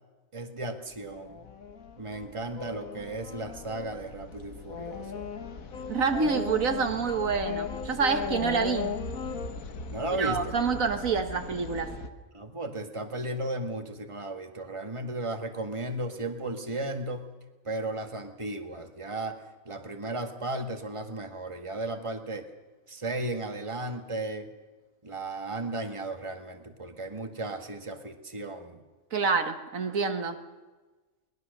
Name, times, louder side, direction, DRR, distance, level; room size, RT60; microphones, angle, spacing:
voice 1, 0.3-1.4 2.0-5.2 8.2-8.3 9.9-10.5 12.3-17.3 17.7-22.5 22.9-24.5 25.0-28.8, right 2 dB, 20° right, 5 dB, 1.8 m, -35 dB
sound 1, 1.1-12.1, left 5 dB, 80° left, 1.9 m, -37 dB
voice 2, 5.9-9.0 10.2-11.9 29.1-30.4, right 5 dB, 75° right, 7 dB, 1.8 m, -27 dB
22.5 x 20.5 x 6.7 m, 1.2 s
omnidirectional pair, 1.4 m